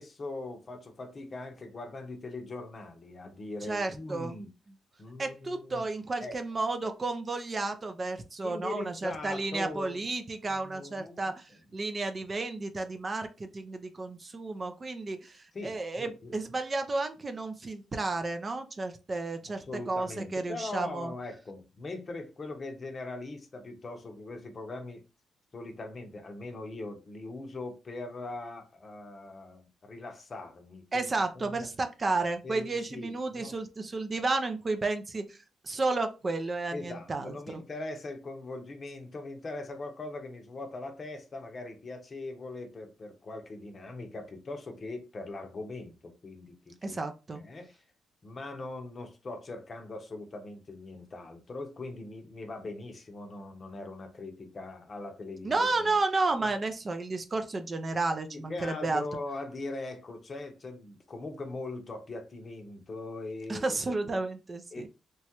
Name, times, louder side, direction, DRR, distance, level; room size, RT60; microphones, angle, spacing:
voice 1, 0.0-4.5 5.0-5.9 6.2-6.4 8.4-10.0 10.5-11.3 15.5-16.3 19.5-25.0 25.5-31.1 31.3-31.7 32.4-33.6 36.7-47.0 47.3-47.8 48.2-55.9 58.3-64.2 64.7-64.9, left 2 dB, 40° left, 0.7 m, -41 dB
voice 2, 3.7-4.4 5.2-21.1 30.9-35.4 35.6-37.6 46.8-47.4 55.4-59.0 63.5-64.9, right 3 dB, 35° right, 0.5 m, -32 dB
3.0 x 2.2 x 2.8 m
cardioid pair, 70°, 0 cm